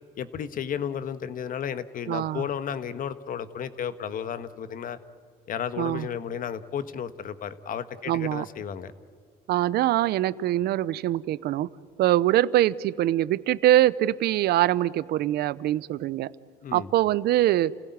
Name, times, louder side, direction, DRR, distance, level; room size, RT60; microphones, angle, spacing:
voice 1, 0.2-5.0 5.5-8.9 16.6-16.9, left 8 dB, 55° left, 12 dB, 1.5 m, -33 dB
voice 2, 2.1-2.5 5.8-6.1 8.1-8.5 9.5-11.7 12.0-16.3 16.7-17.7, right 14 dB, 70° right, 19 dB, 0.7 m, -23 dB
30.0 x 16.5 x 9.6 m, 2.2 s
cardioid pair, 110°, 17 cm